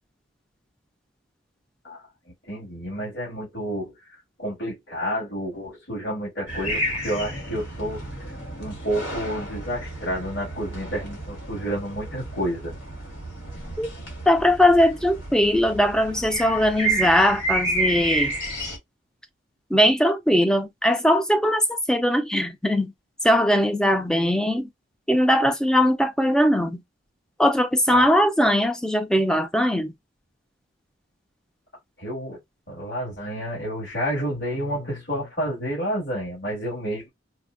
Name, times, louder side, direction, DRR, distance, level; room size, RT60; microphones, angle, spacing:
voice 1, 2.4-8.0 8.6-12.7 27.9-28.1 32.0-32.4 32.7-37.1, equal, 55° left, 2.0 m, -30 dB
sound 1, 6.5-18.8, right 2 dB, 85° left, 1.5 m, -31 dB
voice 2, 14.3-18.3 19.7-22.9 23.2-24.7 25.1-26.8 27.4-29.9, equal, 5° left, 0.4 m, -20 dB
4.3 x 2.1 x 2.4 m
head